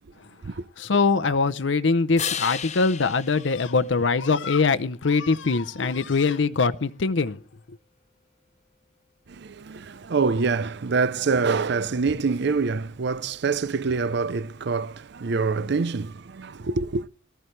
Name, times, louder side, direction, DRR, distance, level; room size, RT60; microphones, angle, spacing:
voice 1, 0.8-7.4, left 4 dB, 75° left, 0.7 m, -22 dB
sound 1, 2.2-4.7 10.5-14.5, left 8 dB, 40° left, 0.8 m, -38 dB
voice 2, 9.4-17.0, right 4 dB, 65° right, 0.6 m, -25 dB
18.5 x 14.0 x 3.3 m
head